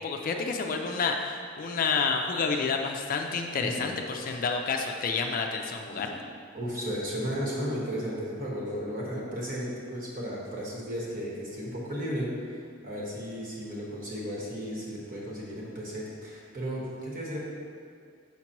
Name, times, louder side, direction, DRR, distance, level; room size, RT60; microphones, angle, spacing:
voice 1, 0.0-6.2, left 5 dB, 45° left, 3 dB, 0.4 m, -29 dB
voice 2, 3.6-3.9 4.2-4.4 5.9-6.1 6.5-17.4, equal, 45° right, -5 dB, 1.4 m, -34 dB
5.9 x 5.8 x 2.9 m, 2.2 s
head